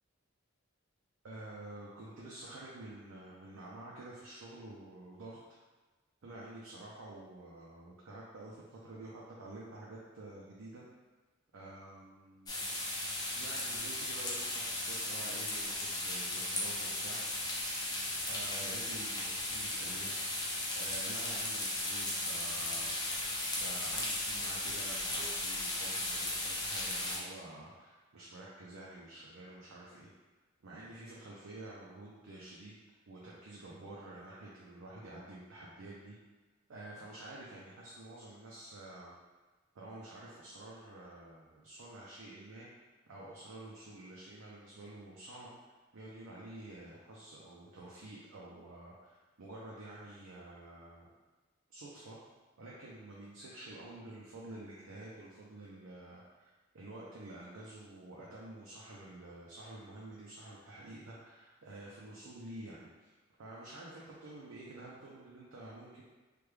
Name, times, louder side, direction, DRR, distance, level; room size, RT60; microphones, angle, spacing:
voice 1, 1.2-5.4 6.2-10.8 11.5-12.7 13.4-17.2 18.3-20.2 20.7-22.9 23.5-30.1 30.6-32.8 33.1-36.1 36.7-39.2 39.7-42.7 43.1-45.5 45.9-51.1 51.7-52.2 52.6-63.1 63.4-66.0, right 2 dB, 90° right, -6 dB, 0.6 m, -49 dB
sound 1, 12.5-27.2, left 1 dB, 20° left, 0.5 m, -36 dB
3.4 x 2.2 x 3.2 m, 1.3 s
head